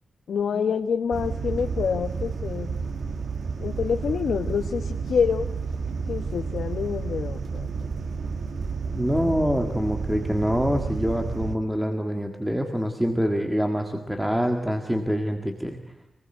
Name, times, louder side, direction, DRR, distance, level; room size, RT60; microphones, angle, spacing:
voice 1, 0.3-2.8 3.6-5.5 6.1-7.9, left 6 dB, 90° left, 6 dB, 1.3 m, -27 dB
sound 1, 1.1-11.6, right 5 dB, 55° right, 1.5 m, -31 dB
voice 2, 8.8-15.8, equal, 5° right, 4 dB, 1.7 m, -25 dB
26.0 x 20.0 x 9.0 m, 0.83 s
wide cardioid pair, 180°, 0 cm